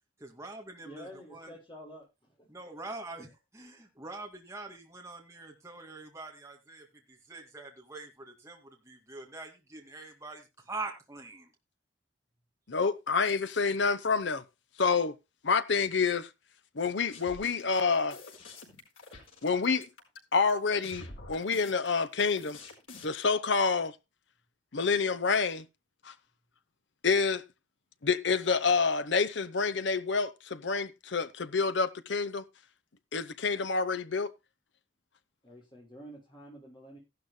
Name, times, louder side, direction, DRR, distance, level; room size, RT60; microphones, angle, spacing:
voice 1, 0.2-1.5 2.5-11.5, right 2 dB, 15° right, 2.3 m, -44 dB
voice 2, 0.8-2.5 35.4-37.0, equal, 25° left, 6.6 m, -49 dB
voice 3, 12.7-14.4 14.8-15.1 15.4-16.3 16.7-18.2 19.4-19.9 20.3-22.6 23.0-23.9 24.7-25.6 26.1-26.2 27.0-27.4 28.0-32.4 33.1-34.3, left 5 dB, 65° left, 0.8 m, -28 dB
sound 1, 17.1-23.2, left 3 dB, 90° left, 4.5 m, -48 dB
15.5 x 12.0 x 2.2 m
head